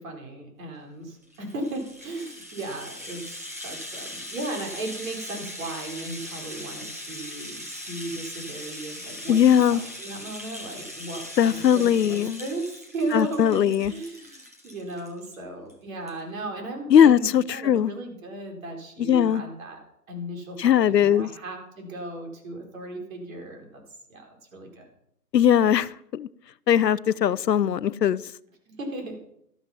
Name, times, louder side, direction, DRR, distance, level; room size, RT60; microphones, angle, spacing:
voice 1, 0.0-23.8 24.1-24.9 28.7-29.2, right 2 dB, 55° right, 4.9 m, -36 dB
Rattle (instrument), 1.2-15.4 15.7-15.8 16.1-16.2, left 1 dB, 10° right, 0.4 m, -40 dB
voice 2, 9.3-9.8 11.4-12.4 13.1-13.9 16.9-17.9 19.1-19.4 20.6-21.3 25.3-26.3 26.7-28.2, left 9 dB, 85° left, 0.7 m, -20 dB
13.0 x 12.0 x 5.8 m
hypercardioid pair, 140°, 48 cm